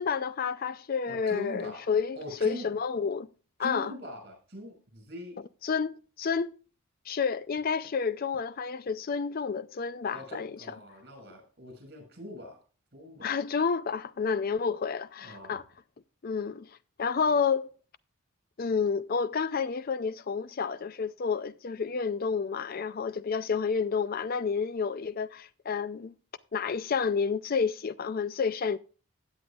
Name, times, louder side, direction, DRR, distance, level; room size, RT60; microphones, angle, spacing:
voice 1, 0.0-3.3 3.6-3.9 5.6-6.6 7.1-10.5 13.2-15.6 16.2-16.7 17.0-17.7 18.6-26.1 26.5-28.8, left 5 dB, 40° left, 0.4 m, -30 dB
voice 2, 1.1-1.9 2.2-2.7 3.6-5.4 10.1-12.6 12.9-13.3 15.2-15.6, left 1 dB, 45° right, 5.8 m, -42 dB
16.0 x 9.6 x 2.4 m
head